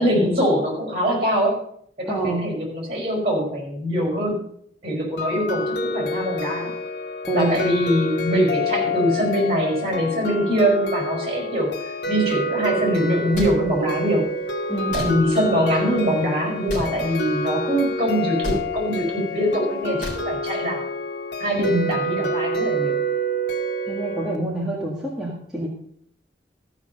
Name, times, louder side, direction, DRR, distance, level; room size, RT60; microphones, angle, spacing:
voice 1, 0.0-1.6 2.0-4.4 4.8-6.7 7.3-14.2 14.9-20.8 21.4-23.0, equal, 35° right, 0 dB, 5.0 m, -23 dB
voice 2, 2.1-2.4 7.3-7.6 14.7-15.3 21.7-21.9 23.9-25.7, right 1 dB, ahead, -5 dB, 1.7 m, -26 dB
sound 1, 5.2-24.4, equal, 70° left, 0.9 m, -27 dB
sound 2, 13.3-13.5 14.9-15.1 16.7-16.9 18.4-18.6 20.0-20.2, equal, 45° left, 3.8 m, -29 dB
14.0 x 5.9 x 6.5 m, 0.67 s
head